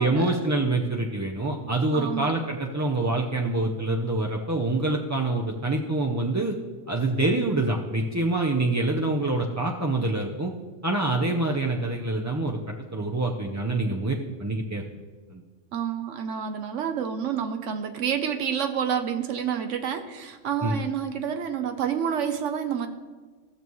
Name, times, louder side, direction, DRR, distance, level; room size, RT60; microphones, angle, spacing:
voice 1, 0.0-6.6 6.9-10.5 10.8-14.8 15.3-15.4 20.6-20.8, right 2 dB, 20° right, -1 dB, 0.4 m, -26 dB
voice 2, 1.9-2.3 15.7-22.9, right 8 dB, 80° right, 7 dB, 1.0 m, -28 dB
16.0 x 6.9 x 3.1 m, 1.4 s
omnidirectional pair, 1.2 m